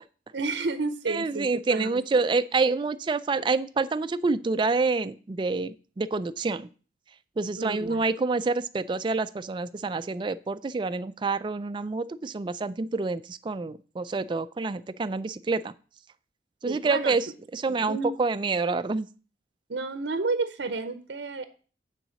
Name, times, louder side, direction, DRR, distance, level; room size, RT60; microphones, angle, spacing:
voice 1, 0.3-1.9 2.1-2.2 7.6-8.0 16.6-17.2 17.7-18.1 19.7-21.4, right 3 dB, 75° right, 10 dB, 0.6 m, -31 dB
voice 2, 1.1-6.7 7.4-15.7 16.6-17.3 17.5-19.1, right 3 dB, 25° right, 14 dB, 0.3 m, -27 dB
9.1 x 3.9 x 6.2 m, 0.39 s
head